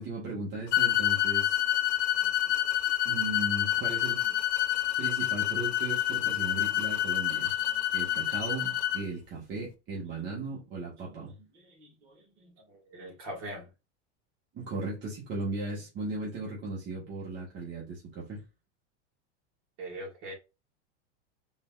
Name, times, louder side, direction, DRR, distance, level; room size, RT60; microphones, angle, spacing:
voice 1, 0.0-1.6 3.0-4.2 5.0-7.5 7.9-11.3 14.5-18.4, right 2 dB, 30° right, 1.5 m, -37 dB
sound 1, 0.7-9.0, left 12 dB, 70° left, 0.8 m, -28 dB
voice 2, 2.1-5.0 5.9-7.0 7.2-8.2 9.9-10.4 11.0-13.7 19.8-20.3, right 1 dB, 50° right, 2.2 m, -48 dB
3.9 x 3.5 x 2.5 m
supercardioid pair, 140°, 35 cm